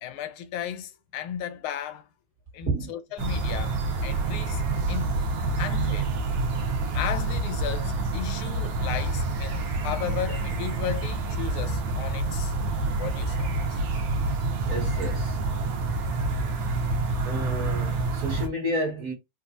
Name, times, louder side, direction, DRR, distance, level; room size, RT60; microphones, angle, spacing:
voice 1, 0.0-2.1 2.5-3.8 4.0-4.6 4.9-5.2 5.6-6.1 6.9-12.5 13.0-13.8, left 10 dB, 85° left, 1.5 m, -35 dB
sound 1, 3.2-18.5, right 3 dB, 70° right, 1.4 m, -27 dB
voice 2, 14.7-15.4 16.6-16.8 17.2-19.1, right 1 dB, 45° right, 1.4 m, -30 dB
4.2 x 2.4 x 2.5 m
omnidirectional pair, 2.3 m